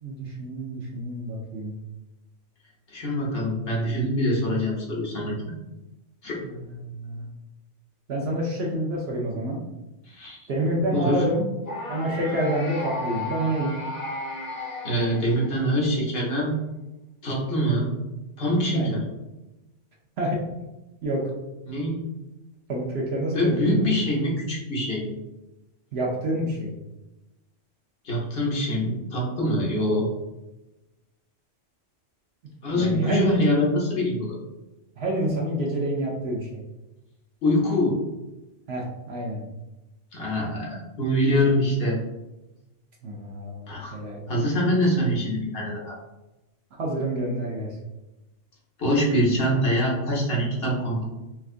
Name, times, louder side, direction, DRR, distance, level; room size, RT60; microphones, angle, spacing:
voice 1, 0.0-1.8 6.4-7.3 8.1-9.6 10.5-11.5 11.9-13.8 18.7-19.0 20.2-20.5 21.0-21.2 22.7-23.9 25.9-26.7 32.7-33.2 35.0-36.6 38.7-39.4 43.0-44.2 46.8-47.8, right 1 dB, 65° right, -2 dB, 0.9 m, -28 dB
voice 2, 2.9-5.5 6.2-6.4 10.1-10.4 10.9-11.2 14.8-16.6 17.2-17.9 18.4-19.0 21.7-22.0 23.3-25.2 28.0-30.1 32.6-34.4 37.4-38.0 40.1-42.0 43.7-44.0 44.3-46.0 48.8-51.0, equal, 55° left, -3 dB, 1.1 m, -24 dB
sound 1, 11.6-15.8, left 1 dB, 40° left, 0.8 m, -34 dB
4.4 x 2.3 x 2.4 m, 1.0 s
omnidirectional pair, 1.2 m